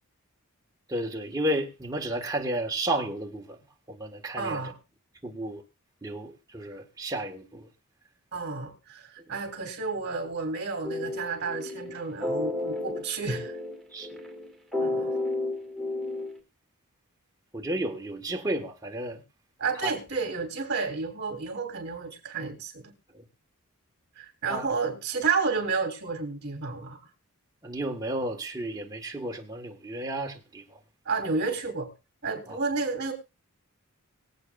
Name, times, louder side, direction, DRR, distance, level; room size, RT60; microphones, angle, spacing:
voice 1, 0.9-3.6 3.9-4.6 5.2-5.6 6.0-7.7 13.9-14.2 17.5-19.2 19.8-19.9 23.1-23.2 24.5-24.7 27.6-30.8 32.5-32.6, right 1 dB, 15° right, 1.6 m, -32 dB
voice 2, 4.4-4.8 8.3-13.6 14.8-15.1 19.6-22.9 24.2-27.0 31.1-31.9 32.2-33.1, right 4 dB, 50° right, 3.6 m, -31 dB
sound 1, 10.8-16.4, left 2 dB, ahead, 2.1 m, -32 dB
24.0 x 8.4 x 2.5 m
head